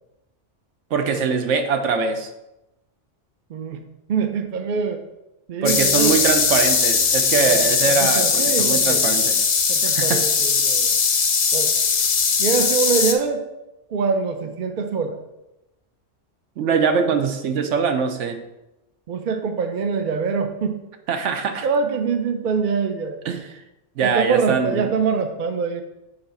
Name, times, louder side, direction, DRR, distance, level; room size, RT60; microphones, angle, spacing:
voice 1, 0.9-2.3 5.6-9.4 9.8-10.2 16.6-18.4 21.1-21.7 23.2-23.6 24.0-24.9, right 5 dB, 75° right, 7 dB, 1.1 m, -22 dB
voice 2, 3.5-3.8 4.1-5.0 5.5-6.2 7.4-7.6 7.9-9.0 9.7-11.0 11.5-11.7 12.4-13.4 13.9-15.2 19.1-20.8 21.6-23.2 24.0-25.8, right 5 dB, 50° right, 6 dB, 0.6 m, -24 dB
sound 1, 5.7-13.1, left 5 dB, 45° left, 0.7 m, -19 dB
6.9 x 3.9 x 5.3 m, 0.94 s
omnidirectional pair, 1.3 m